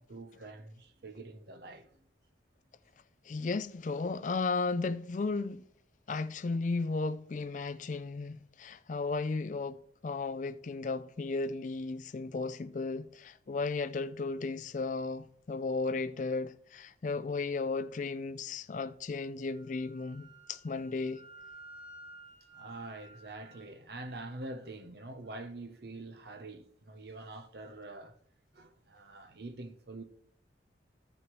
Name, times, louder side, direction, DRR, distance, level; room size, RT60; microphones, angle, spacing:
voice 1, 0.0-2.0 22.6-28.2 28.5-30.0, right 2 dB, 55° right, 0.8 m, -45 dB
voice 2, 3.2-5.6 6.1-21.2, left 3 dB, 40° left, 0.4 m, -35 dB
Wind instrument woodwind instrument, 19.5-23.7, right 2 dB, 35° right, 4.4 m, -53 dB
14.5 x 6.1 x 3.1 m
head